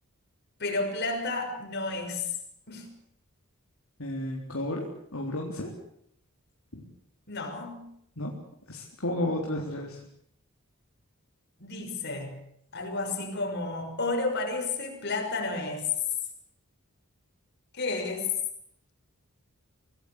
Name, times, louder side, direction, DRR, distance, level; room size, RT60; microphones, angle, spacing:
voice 1, 0.6-2.3 2.7-2.9 7.3-7.8 11.6-12.4 12.7-15.9 17.8-18.3, left 3 dB, 50° left, 4 dB, 6.2 m, -31 dB
voice 2, 4.0-5.7 6.7-6.8 8.2-8.3 8.7-10.0, left 1 dB, 70° left, -1 dB, 3.8 m, -32 dB
25.5 x 18.5 x 8.2 m, 0.71 s
head